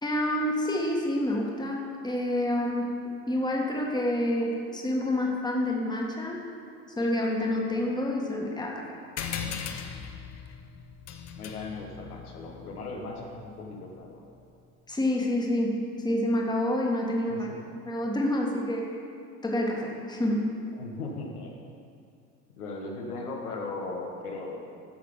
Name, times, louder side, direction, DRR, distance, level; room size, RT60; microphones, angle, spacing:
voice 1, 0.0-2.9 3.3-6.4 7.0-8.9 14.9-17.5 17.8-18.9 19.4-20.6, left 1 dB, 10° left, -1 dB, 1.6 m, -28 dB
sound 1, 9.2-14.1, left 7 dB, 35° left, 0.8 m, -39 dB
voice 2, 11.4-14.2 17.3-17.6 20.7-21.5 22.6-24.6, left 3 dB, 75° left, 0 dB, 1.4 m, -38 dB
12.0 x 6.7 x 5.0 m, 2.4 s
figure-of-eight pair, 65°, 46 cm